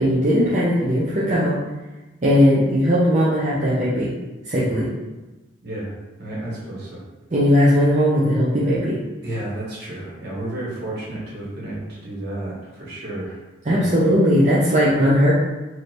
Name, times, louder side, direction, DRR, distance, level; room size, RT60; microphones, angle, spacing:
voice 1, 0.0-1.5 2.2-4.1 4.4-4.9 7.3-9.0 13.6-15.3, equal, 35° right, -8 dB, 0.6 m, -18 dB
voice 2, 5.6-5.9 6.2-7.0 9.2-13.4 13.7-14.1, right 1 dB, 55° right, -7 dB, 1.5 m, -32 dB
3.2 x 2.7 x 4.2 m, 1.1 s
head